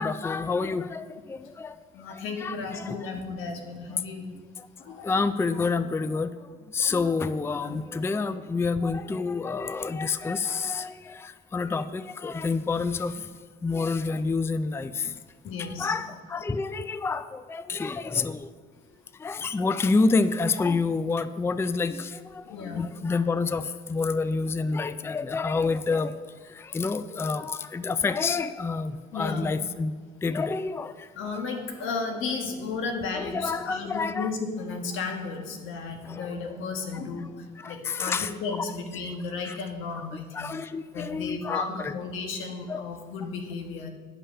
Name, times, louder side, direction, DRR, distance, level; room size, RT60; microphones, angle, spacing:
voice 1, 0.0-1.7 2.4-3.0 5.0-6.3 6.7-13.1 13.6-14.9 15.6-18.4 19.2-22.2 22.6-23.6 23.9-26.1 26.7-29.9 30.2-30.9 33.1-34.3 36.1-36.2 37.6-38.3 39.4-39.6 40.3-41.9 42.7-42.8, left 4 dB, 10° left, 13 dB, 0.3 m, -28 dB
voice 2, 1.9-4.3 4.8-5.2 7.6-7.8 15.4-15.9 22.4-22.9 29.1-29.5 31.1-40.5 40.9-43.9, left 4 dB, 90° left, 4 dB, 1.2 m, -34 dB
9.9 x 5.5 x 5.5 m, 1.5 s
cardioid pair, 90°, 20 cm